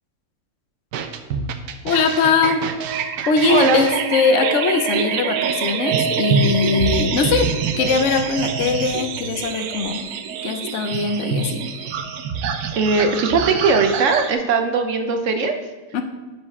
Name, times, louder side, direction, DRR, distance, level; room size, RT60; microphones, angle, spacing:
sound 1, 0.9-14.3, right 6 dB, 85° right, 1.2 m, -25 dB
voice 1, 1.8-2.6 3.3-7.5 7.8-10.0 10.4-11.6 15.9-16.0, left 5 dB, 60° left, 6 dB, 0.8 m, -21 dB
voice 2, 3.2-3.8 12.7-15.5, right 4 dB, 60° right, 6 dB, 0.9 m, -19 dB
9.8 x 4.9 x 4.1 m, 1.2 s
omnidirectional pair, 1.7 m